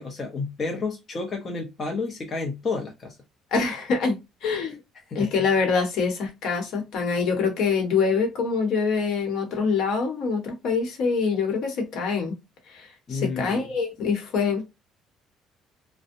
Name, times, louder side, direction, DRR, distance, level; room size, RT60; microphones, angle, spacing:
voice 1, 0.0-3.2 5.0-5.5 13.1-13.7, left 4 dB, 35° left, 0.6 m, -31 dB
voice 2, 3.5-4.2 4.4-4.8 5.1-12.3 12.7-14.6, left 5 dB, 70° left, 1.0 m, -25 dB
2.6 x 2.1 x 2.5 m
cardioid pair, 125°, 0 cm